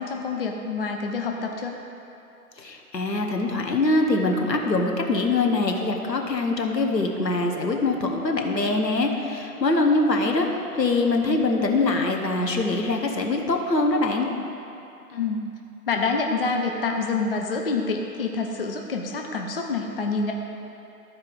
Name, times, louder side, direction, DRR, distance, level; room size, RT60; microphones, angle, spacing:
voice 1, 0.0-1.8 15.1-15.5 15.9-20.3, left 4 dB, 40° left, 2 dB, 0.5 m, -27 dB
voice 2, 2.6-10.5 10.7-14.3, left 2 dB, 85° left, 2 dB, 1.3 m, -23 dB
12.5 x 4.7 x 4.9 m, 2.8 s
figure-of-eight pair, 140°, 48 cm